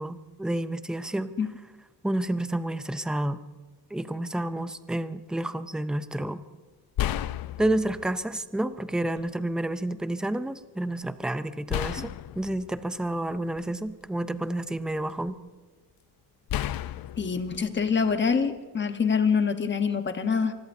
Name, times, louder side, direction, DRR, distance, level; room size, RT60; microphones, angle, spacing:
voice 1, 0.0-1.3 2.0-3.4 3.9-6.4 7.6-12.1 12.4-15.4, right 1 dB, ahead, 11 dB, 0.4 m, -30 dB
sound 1, 6.2-6.4 7.0-8.2 9.2-9.3 11.7-13.9 14.4-15.3 16.5-18.6, left 12 dB, 60° left, 0.6 m, -33 dB
voice 2, 17.2-20.5, left 6 dB, 25° left, 7 dB, 1.1 m, -25 dB
25.5 x 20.5 x 2.7 m, 1.4 s
wide cardioid pair, 165°, 41 cm